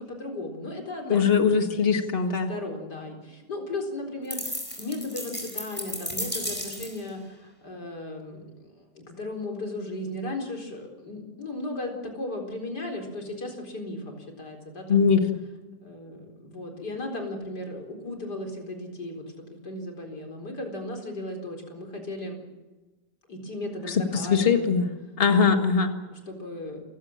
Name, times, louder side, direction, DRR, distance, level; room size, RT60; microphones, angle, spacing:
voice 1, 0.0-1.8 2.3-15.1 15.8-19.2 19.5-22.4 23.3-24.9 25.3-25.6 26.1-26.8, left 2 dB, 65° left, 3 dB, 4.9 m, -36 dB
voice 2, 1.1-2.5 14.9-15.4 23.9-24.9 25.2-26.0, left 6 dB, 35° left, 6 dB, 2.0 m, -21 dB
sound 1, 4.3-7.1, equal, 5° left, 4.4 m, -34 dB
29.5 x 16.0 x 7.3 m, 1.2 s
omnidirectional pair, 1.9 m